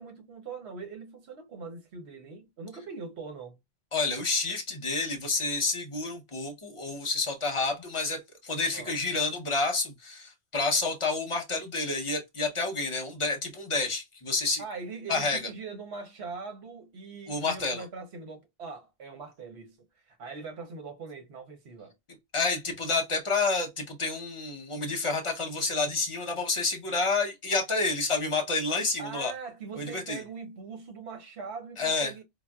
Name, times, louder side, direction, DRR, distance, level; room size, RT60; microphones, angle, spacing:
voice 1, 0.0-3.6 8.7-9.0 14.6-19.8 20.1-21.9 29.0-32.2, right 4 dB, 80° right, 1.2 m, -41 dB
voice 2, 3.9-14.6 15.1-15.5 17.3-17.8 22.3-29.3 29.8-30.2 31.8-32.1, left 3 dB, 30° left, 0.8 m, -29 dB
3.9 x 2.1 x 2.2 m
omnidirectional pair, 1.1 m